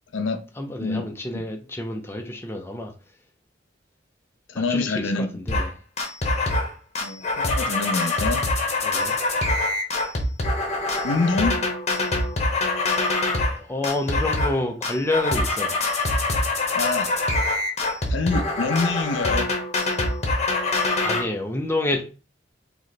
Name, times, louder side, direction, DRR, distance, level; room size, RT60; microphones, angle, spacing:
voice 1, 0.6-2.9 4.5-5.7 8.8-9.2 13.6-15.8 21.0-22.0, left 2 dB, 15° left, 0.6 m, -28 dB
voice 2, 4.5-5.3 7.0-8.4 11.0-11.6 16.7-17.1 18.1-19.5, left 3 dB, 85° left, 0.5 m, -25 dB
sound 1, 5.5-5.7 6.0-6.7 6.9-13.6 13.8-14.6 14.8-21.2, left 2 dB, 35° left, 1.0 m, -24 dB
3.1 x 3.0 x 4.0 m
head